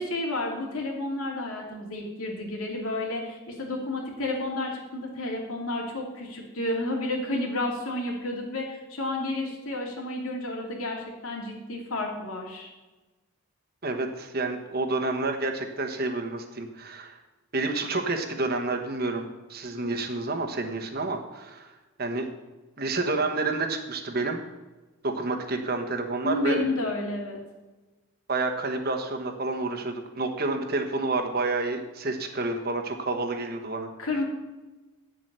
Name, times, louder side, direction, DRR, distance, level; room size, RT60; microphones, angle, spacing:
voice 1, 0.0-12.7 26.2-27.4 34.0-34.2, left 2 dB, 80° left, 0 dB, 2.7 m, -31 dB
voice 2, 13.8-17.2 17.5-21.7 22.0-22.3 22.8-24.4 25.0-26.6 28.3-33.9, right 3 dB, 45° right, 4 dB, 1.2 m, -29 dB
9.4 x 7.5 x 6.8 m, 1.2 s
head